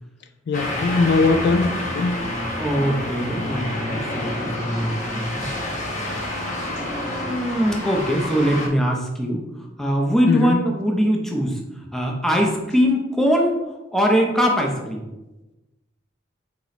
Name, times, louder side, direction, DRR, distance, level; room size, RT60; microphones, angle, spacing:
voice 1, 0.5-2.2 6.8-6.9 10.3-10.6, left 3 dB, 60° left, 8 dB, 0.3 m, -20 dB
sound 1, 0.5-8.7, left 1 dB, 40° left, 0.9 m, -28 dB
voice 2, 2.6-5.5 6.6-9.5 9.8-13.5 13.9-15.1, equal, ahead, 0 dB, 0.6 m, -22 dB
4.2 x 3.0 x 4.0 m, 1.0 s
head